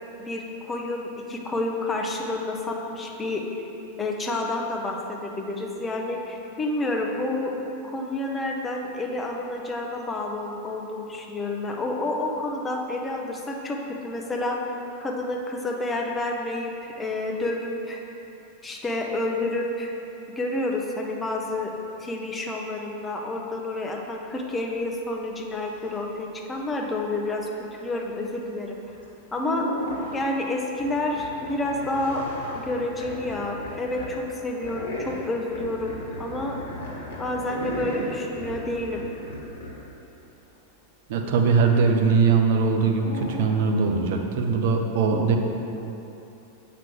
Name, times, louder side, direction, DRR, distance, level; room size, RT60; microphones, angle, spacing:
voice 1, 0.2-3.5 4.0-7.6 7.8-14.6 15.0-18.0 18.6-19.9 20.4-21.7 22.0-28.8 29.3-29.7 30.1-32.2 32.5-36.6 37.2-39.0, left 2 dB, 15° left, 1 dB, 0.7 m, -29 dB
sound 1, 28.9-29.0 29.4-30.3 30.8-34.2 34.6-39.8 42.9-43.4, left 1 dB, 55° left, 1.3 m, -35 dB
voice 2, 41.1-45.4, right 5 dB, 55° right, 3 dB, 0.6 m, -21 dB
7.5 x 4.9 x 3.4 m, 2.9 s
figure-of-eight pair, 90°, 0 cm